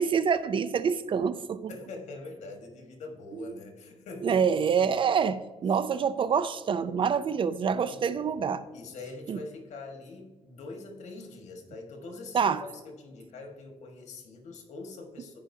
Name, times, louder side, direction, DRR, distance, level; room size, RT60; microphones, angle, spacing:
voice 1, 0.0-1.7 3.4-3.5 4.2-8.6 9.3-9.4 12.3-12.6, right 6 dB, 45° right, 0.4 m, -26 dB
voice 2, 1.7-4.4 4.8-4.9 5.7-5.8 7.9-8.3 8.7-15.4, left 3 dB, 70° left, 1.6 m, -44 dB
14.5 x 5.1 x 2.7 m
cardioid pair, 105°, 12 cm